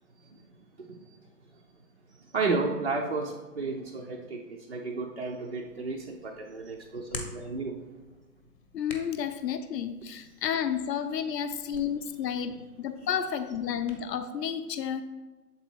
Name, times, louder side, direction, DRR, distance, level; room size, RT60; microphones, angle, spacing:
voice 1, 2.3-7.8, right 3 dB, 40° right, -1 dB, 0.4 m, -32 dB
Hands, 5.7-14.1, left 3 dB, 35° left, 0.8 m, -48 dB
voice 2, 8.7-15.0, left 8 dB, 80° left, 9 dB, 0.7 m, -31 dB
7.5 x 4.0 x 4.4 m, 1.2 s
hypercardioid pair, 165°, 49 cm